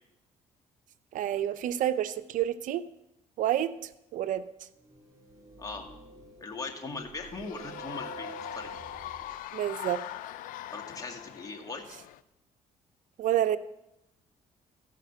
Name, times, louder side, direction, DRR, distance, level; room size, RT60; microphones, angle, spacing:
voice 1, 1.1-2.9 3.4-4.5 9.5-10.0 13.2-13.6, right 11 dB, 70° right, 13 dB, 0.5 m, -29 dB
sound 1, 4.8-9.4, right 6 dB, 25° right, 2.6 m, -49 dB
voice 2, 6.4-8.7 10.7-11.8, left 3 dB, 25° left, 1 dB, 2.0 m, -39 dB
sound 2, 7.2-12.2, left 13 dB, 80° left, 0.5 m, -41 dB
14.5 x 5.0 x 6.8 m, 0.87 s
cardioid pair, 80°, 14 cm